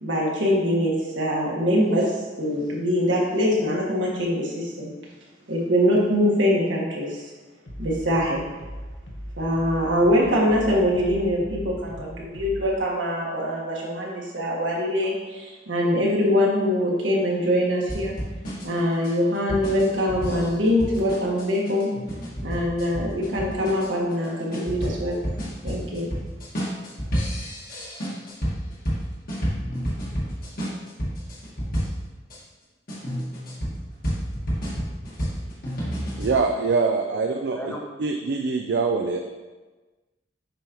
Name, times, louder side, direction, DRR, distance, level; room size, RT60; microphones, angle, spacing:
voice 1, 0.0-4.9 5.5-7.3 7.8-8.4 9.4-18.1 18.6-21.9 22.4-25.2 25.6-26.1, equal, 85° right, -4 dB, 1.6 m, -23 dB
sound 1, 7.7-12.6, equal, 80° left, 1.0 m, -38 dB
sound 2, 17.9-32.4 32.9-36.3, equal, 50° left, 1.7 m, -30 dB
voice 2, 36.2-37.7 38.0-39.2, right 4 dB, 60° right, 3 dB, 0.4 m, -24 dB
voice 3, 37.2-37.8, equal, 10° left, -1 dB, 0.8 m, -36 dB
7.6 x 5.0 x 3.0 m, 1.3 s
head